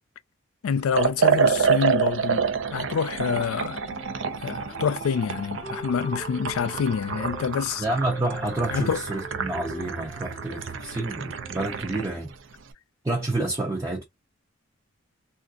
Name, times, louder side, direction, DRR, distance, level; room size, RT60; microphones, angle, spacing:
voice 1, 0.6-2.5 2.7-3.8 4.4-7.8 8.7-9.0, left 6 dB, 80° left, 0.4 m, -27 dB
Liquid, 0.9-12.1, right 6 dB, 60° right, 0.5 m, -28 dB
sound 1, 3.4-7.5 8.0-12.2, left 1 dB, 30° left, 0.6 m, -43 dB
voice 2, 7.8-12.3 13.0-14.0, right 2 dB, 15° right, 0.6 m, -29 dB
3.4 x 2.5 x 2.5 m
head